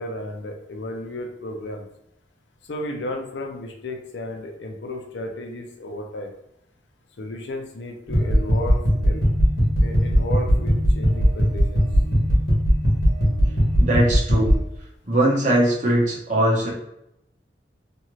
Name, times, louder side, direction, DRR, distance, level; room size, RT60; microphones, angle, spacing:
voice 1, 0.0-1.9 2.7-6.3 7.2-9.2 9.8-11.8, left 1 dB, 75° left, 2 dB, 0.5 m, -33 dB
sound 1, 8.1-14.5, equal, 55° left, 1.1 m, -19 dB
voice 2, 13.8-14.6 15.1-16.7, right 1 dB, 45° right, -4 dB, 0.8 m, -20 dB
2.6 x 2.4 x 3.0 m, 0.79 s
head